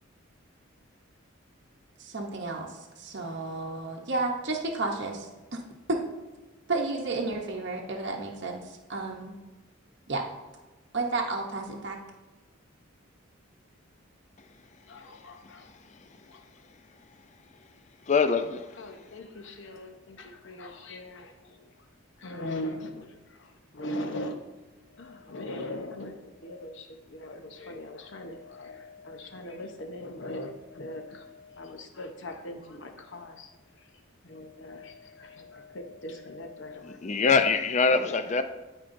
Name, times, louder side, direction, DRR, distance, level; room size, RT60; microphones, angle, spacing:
voice 1, 2.0-5.3 5.9-6.0 6.7-9.3 10.1-10.2 10.9-12.0, right 3 dB, 55° right, 0.8 m, -32 dB
voice 2, 14.9-15.7 16.3-16.4 18.7-21.7 22.2-24.5 24.9-33.5 33.8-33.9 34.2-37.1 38.0-38.2, left 1 dB, 60° left, 0.8 m, -40 dB
voice 3, 18.1-18.8 36.8-38.4, left 4 dB, 35° left, 0.4 m, -24 dB
12.5 x 4.5 x 2.6 m
head